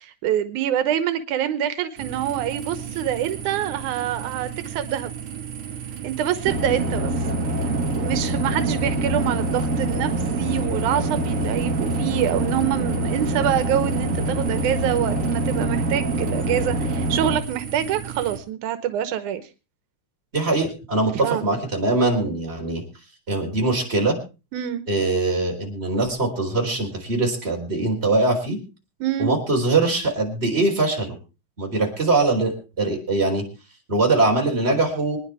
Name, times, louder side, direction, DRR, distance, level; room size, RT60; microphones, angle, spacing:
voice 1, 0.0-5.1 6.0-7.1 8.0-10.1 10.4-19.4 21.2-21.5 24.5-24.8 29.0-29.3, right 10 dB, 85° right, 11 dB, 2.4 m, -25 dB
sound 1, 2.0-18.4, right 9 dB, 55° right, 2.8 m, -35 dB
sound 2, 6.4-17.4, right 1 dB, 35° right, 1.4 m, -25 dB
voice 2, 20.3-22.8 23.3-24.2 24.9-28.6 29.2-31.1 31.6-33.4 33.9-35.2, right 2 dB, 20° right, 1 dB, 4.1 m, -22 dB
25.5 x 10.0 x 3.4 m, 0.31 s
omnidirectional pair, 3.4 m